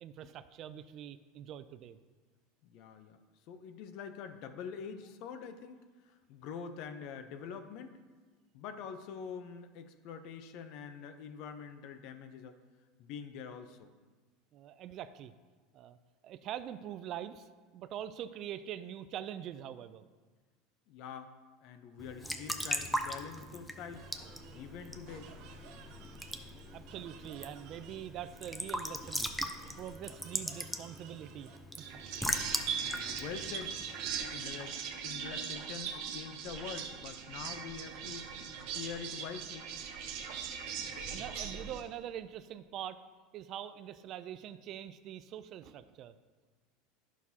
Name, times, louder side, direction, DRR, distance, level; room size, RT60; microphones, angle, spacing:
voice 1, 0.0-2.0 14.5-15.3 15.7-16.0 16.2-17.5 17.7-20.0 26.7-29.3 29.8-31.5 41.1-43.0 43.3-46.1, right 10 dB, 45° right, 13 dB, 0.4 m, -44 dB
voice 2, 2.6-3.2 3.5-8.0 8.5-12.6 13.0-13.9 20.9-21.3 21.6-24.1 24.5-25.3 32.8-33.7 34.3-34.8 35.0-39.7, left 7 dB, 60° left, 8 dB, 0.7 m, -45 dB
Raindrop / Drip / Trickle dribble, 22.0-34.5, equal, 5° left, 0.6 m, -40 dB
sound 1, 23.9-41.8, right 7 dB, 60° right, 0.8 m, -42 dB
10.5 x 6.1 x 2.8 m, 1.4 s
supercardioid pair, 120°, 0 cm